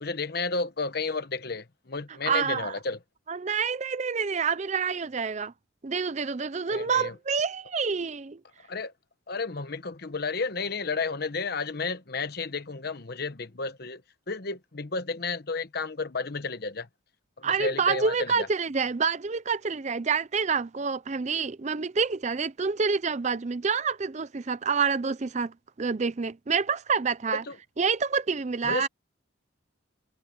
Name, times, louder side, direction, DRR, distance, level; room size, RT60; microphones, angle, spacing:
voice 1, 0.0-3.0 6.7-7.1 8.7-8.9 9.3-14.0 14.3-16.9 17.4-18.5 27.3-27.6 28.6-28.9, left 4 dB, 50° left, 1.0 m, -32 dB
voice 2, 2.3-2.8 3.3-5.5 5.8-8.4 17.4-27.4 27.8-28.9, right 5 dB, 35° right, 0.5 m, -27 dB
head